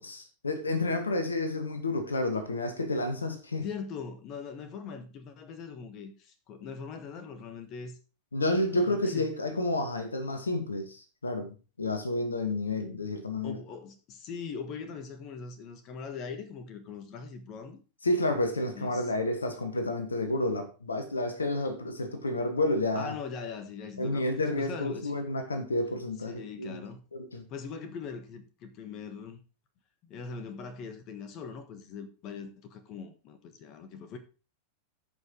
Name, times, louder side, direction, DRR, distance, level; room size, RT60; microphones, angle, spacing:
voice 1, 0.0-3.6 8.3-13.6 18.0-23.2 24.0-26.8 27.1-27.4, left 2 dB, 75° left, 1.3 m, -30 dB
voice 2, 3.6-8.0 8.5-9.2 13.4-17.8 18.7-19.1 22.9-24.2 24.6-25.2 26.3-27.0 27.5-29.4 30.0-34.2, left 5 dB, 35° left, 1.4 m, -41 dB
14.5 x 5.5 x 3.8 m
figure-of-eight pair, 90°, 0 cm